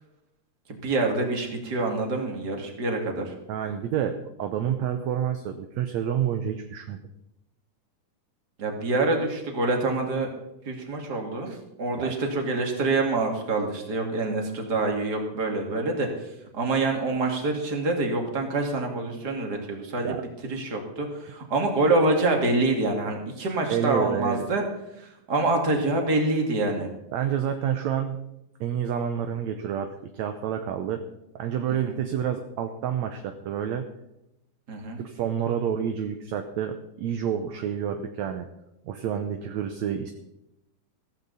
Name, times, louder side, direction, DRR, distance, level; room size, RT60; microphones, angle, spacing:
voice 1, 0.7-3.3 8.6-10.3 10.6-11.5 11.8-20.2 20.4-24.6 25.0-26.9 31.7-32.0 34.7-35.0, right 2 dB, 30° right, 2 dB, 2.6 m, -26 dB
voice 2, 3.5-7.0 11.4-11.6 12.0-12.2 20.0-20.2 23.7-24.5 27.1-28.3 28.6-31.0 31.4-33.9 35.0-38.5 38.9-40.1, right 9 dB, 70° right, 6 dB, 1.9 m, -29 dB
15.0 x 15.0 x 4.1 m, 0.87 s
omnidirectional pair, 3.9 m